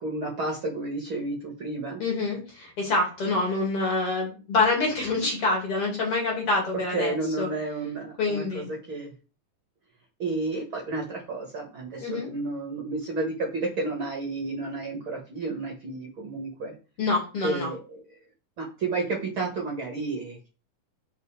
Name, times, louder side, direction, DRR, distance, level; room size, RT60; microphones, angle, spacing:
voice 1, 0.0-2.0 6.9-8.6 8.9-9.1 10.2-16.7 17.4-18.0 18.6-20.5, right 2 dB, 45° right, -1 dB, 2.1 m, -31 dB
voice 2, 2.0-7.5 8.2-8.7 12.0-12.3 17.0-17.7, left 3 dB, 45° left, -1 dB, 2.8 m, -26 dB
5.6 x 5.2 x 5.0 m, 0.33 s
omnidirectional pair, 3.9 m